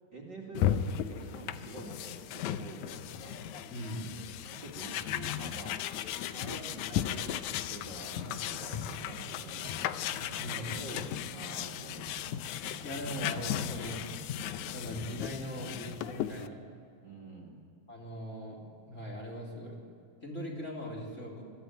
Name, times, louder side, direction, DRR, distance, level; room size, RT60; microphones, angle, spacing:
voice 1, 0.1-3.7 4.4-12.3 17.0-17.6, right 2 dB, 35° right, -1 dB, 2.6 m, -47 dB
sound 1, 0.5-16.5, left 11 dB, 75° left, 1.9 m, -36 dB
voice 2, 3.6-4.1 10.4-10.7 12.8-14.0 14.7-16.6 17.9-19.7 20.2-21.4, equal, 20° left, -2 dB, 3.5 m, -40 dB
sound 2, 8.1-15.7, right 7 dB, 80° right, 2.6 m, -50 dB
22.5 x 14.5 x 9.2 m, 2.5 s
omnidirectional pair, 3.8 m